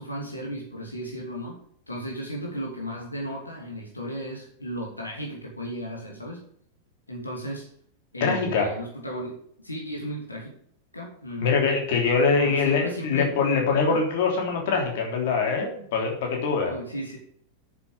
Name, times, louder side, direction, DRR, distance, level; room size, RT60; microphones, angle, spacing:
voice 1, 0.0-1.6 1.9-6.4 7.1-7.7 8.1-10.5 10.9-11.6 12.4-13.4 13.8-14.0 16.6-17.2, equal, 80° left, -1 dB, 2.7 m, -35 dB
voice 2, 8.2-8.7 11.4-16.8, left 4 dB, 55° left, 1 dB, 3.3 m, -23 dB
9.4 x 7.2 x 6.8 m, 0.64 s
figure-of-eight pair, 90°, 0 cm